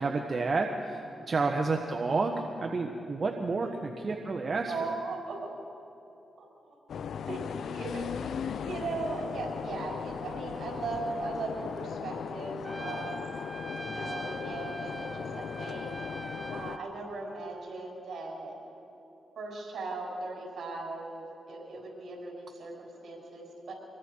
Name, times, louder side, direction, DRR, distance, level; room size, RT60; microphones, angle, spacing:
voice 1, 0.0-4.7, right 3 dB, 45° right, 2 dB, 1.3 m, -30 dB
voice 2, 4.7-5.4 6.4-6.8 7.3-7.4 7.7-13.4 13.8-15.9 16.5-18.6 19.3-23.7, right 3 dB, 75° right, -1 dB, 6.4 m, -38 dB
sound 1, 6.9-16.8, left 7 dB, 80° left, 0.6 m, -38 dB
Trumpet, 12.6-16.9, right 1 dB, 15° right, 0.7 m, -42 dB
26.0 x 22.0 x 4.7 m, 2.7 s
cardioid pair, 65°, 0 cm